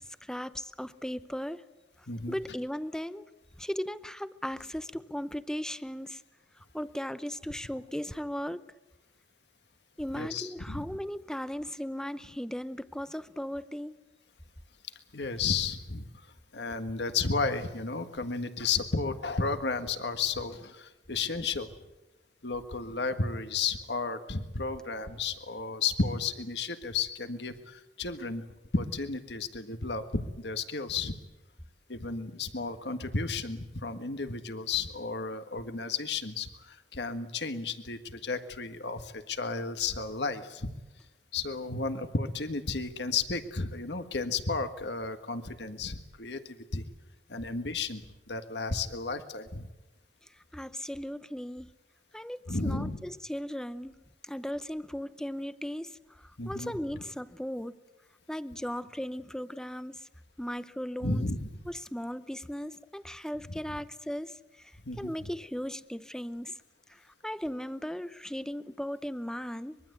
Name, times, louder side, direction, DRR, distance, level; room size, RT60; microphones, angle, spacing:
voice 1, 0.2-1.7 2.0-3.3 3.6-6.2 6.7-8.6 10.0-14.0 50.5-51.7 52.1-53.9 54.2-57.8 58.3-60.1 60.4-61.2 61.7-66.6 66.9-69.8, equal, 5° left, 14 dB, 0.8 m, -37 dB
voice 2, 10.1-10.8 15.1-16.3 16.5-21.7 22.4-28.4 28.7-31.2 31.9-40.7 41.3-46.8 47.3-49.7 52.5-53.0 56.4-56.7 61.0-61.5 64.8-65.3, left 4 dB, 70° left, 9 dB, 1.6 m, -33 dB
24.0 x 22.5 x 8.1 m, 1.0 s
head